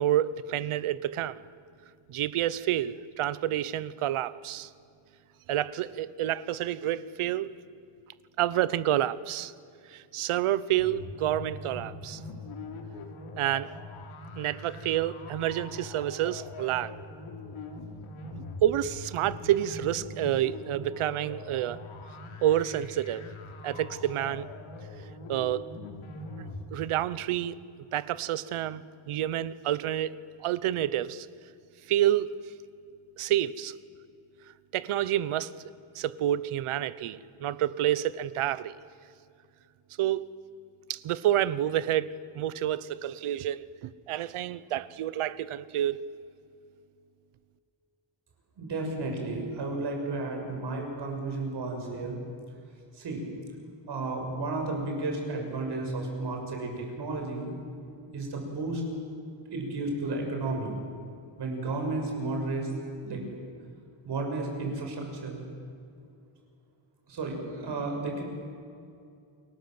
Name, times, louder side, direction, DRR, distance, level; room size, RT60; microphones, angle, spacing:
voice 1, 0.0-1.4 2.1-4.7 5.5-7.5 8.4-9.5 9.9-12.2 13.4-13.7 14.4-17.0 18.6-21.8 22.4-23.3 23.6-24.5 25.3-25.7 26.4-27.6 27.9-31.3 31.9-32.3 33.2-33.7 34.7-35.5 35.9-38.7 40.0-40.3 40.9-46.0, right 12 dB, 75° right, 1.0 m, -29 dB
sound 1, 10.7-26.7, left 2 dB, 70° left, 3.7 m, -42 dB
voice 2, 48.6-52.2 52.9-53.2 53.9-57.5 58.1-58.8 59.5-60.7 61.4-62.7 63.0-63.2 64.0-65.4 67.1-68.2, right 2 dB, 50° right, 6.6 m, -33 dB
29.5 x 22.0 x 7.8 m
wide cardioid pair, 170°, 50 cm